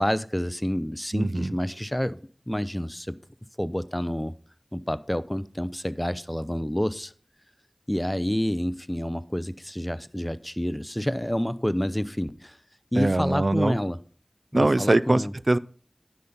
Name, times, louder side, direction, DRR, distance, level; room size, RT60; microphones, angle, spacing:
voice 1, 0.0-2.2 2.5-3.2 3.6-4.3 4.7-7.1 7.9-12.6 12.9-14.0 14.5-15.3, equal, 15° left, 0.6 m, -28 dB
voice 2, 1.1-1.5 13.0-13.7 14.5-15.6, right 2 dB, 55° right, 0.4 m, -22 dB
10.0 x 5.8 x 5.4 m
wide cardioid pair, 45°, 0 cm